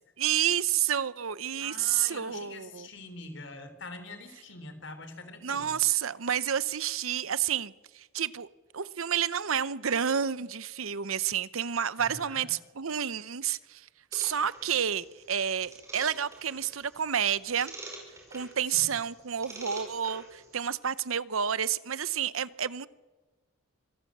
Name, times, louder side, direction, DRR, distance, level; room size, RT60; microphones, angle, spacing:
voice 1, 0.2-2.9 5.4-8.5 8.7-13.9 14.1-17.7 18.3-22.9, right 9 dB, 80° right, 0.8 m, -30 dB
voice 2, 1.6-6.0 12.0-12.5 18.7-18.9, left 2 dB, 60° left, 3.4 m, -45 dB
sound 1, 14.1-20.6, right 2 dB, 15° right, 5.4 m, -48 dB
25.0 x 15.0 x 8.6 m
head